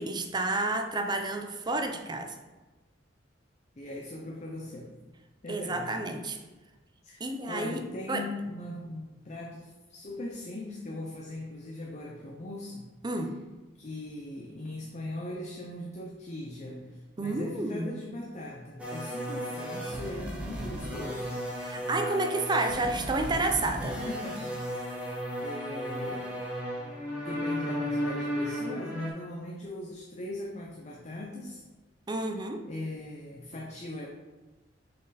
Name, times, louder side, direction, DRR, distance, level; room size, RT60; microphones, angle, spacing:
voice 1, 0.0-2.4 5.5-6.4 7.2-7.8 8.1-8.2 13.0-13.3 17.2-17.9 21.6-23.9 32.1-32.6, right 2 dB, 25° right, 5 dB, 0.5 m, -30 dB
voice 2, 3.8-4.9 5.4-6.0 7.0-12.9 13.8-21.4 23.8-24.9 25.4-26.4 27.2-31.6 32.6-34.1, left 1 dB, 40° left, -1 dB, 0.6 m, -40 dB
sound 1, 18.8-29.1, equal, 5° right, 1.3 m, -35 dB
6.2 x 4.4 x 4.1 m, 1.2 s
head